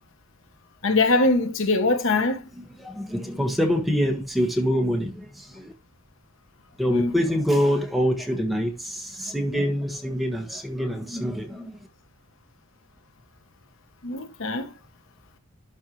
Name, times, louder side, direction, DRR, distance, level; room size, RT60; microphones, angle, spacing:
voice 1, 0.8-2.4 6.9-7.1 14.0-14.7, left 2 dB, 65° left, 1.0 m, -22 dB
voice 2, 2.5-5.7 6.8-11.7, equal, ahead, 1.6 m, -25 dB
12.0 x 4.7 x 3.1 m
head